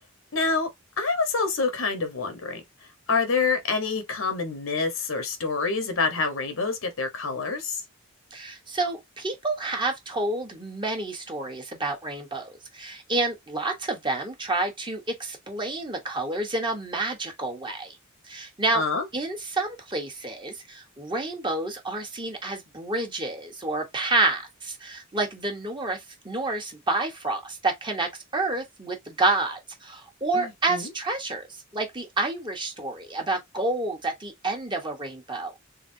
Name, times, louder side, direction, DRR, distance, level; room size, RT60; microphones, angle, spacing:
voice 1, 0.3-0.7 1.0-2.6 3.1-7.8 18.7-19.1 30.3-30.9, left 4 dB, 75° left, 1.2 m, -27 dB
voice 2, 8.3-18.0 18.3-18.8 19.1-31.4 31.7-35.5, right 2 dB, 25° right, 1.2 m, -29 dB
4.0 x 3.6 x 2.7 m
head